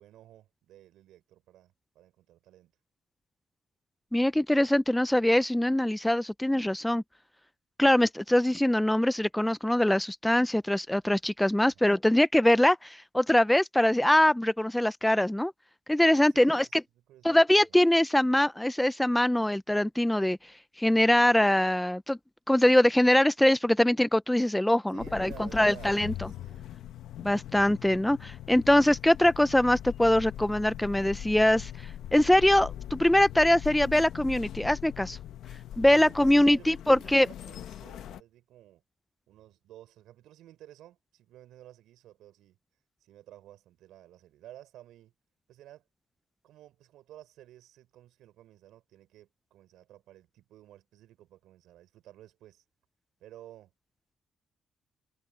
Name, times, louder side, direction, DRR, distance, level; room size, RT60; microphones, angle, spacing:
voice 1, 0.0-2.7 11.6-11.9 16.3-17.8 24.9-26.7 27.5-27.9 36.0-38.8 39.3-42.6 43.0-45.1 45.5-45.8 46.4-52.6 53.2-53.7, right 13 dB, 85° right, 6.1 m, -53 dB
voice 2, 4.1-7.0 7.8-15.5 15.9-16.8 17.2-20.4 20.8-22.2 22.5-26.1 27.2-31.7 32.1-35.2 35.8-37.3, left 1 dB, 5° left, 0.6 m, -23 dB
sound 1, 25.0-38.2, left 11 dB, 75° left, 1.0 m, -41 dB
cardioid pair, 90°, 0 cm